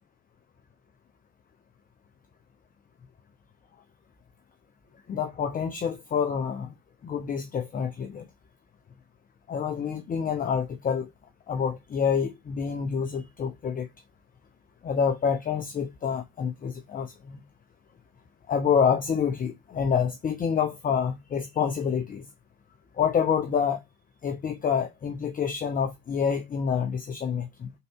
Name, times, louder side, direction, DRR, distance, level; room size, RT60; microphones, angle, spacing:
voice 1, 5.1-6.7 7.0-8.3 9.5-11.1 11.5-13.9 14.8-17.4 18.5-22.3 23.0-23.8 24.2-27.7, left 7 dB, 20° left, 0.8 m, -27 dB
5.6 x 4.0 x 4.5 m
hypercardioid pair, 85°, 44 cm